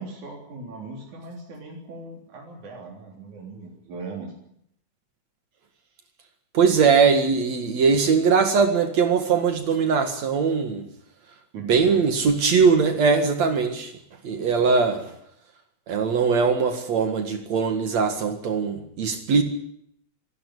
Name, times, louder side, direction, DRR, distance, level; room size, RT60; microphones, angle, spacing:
voice 1, 0.0-4.3 11.5-12.0 14.6-14.7, right 3 dB, 85° right, -1 dB, 5.0 m, -39 dB
voice 2, 6.5-10.9 11.6-13.9 14.2-15.0 15.9-19.4, right 5 dB, 65° right, 6 dB, 3.1 m, -21 dB
26.0 x 13.0 x 10.0 m, 0.73 s
omnidirectional pair, 3.3 m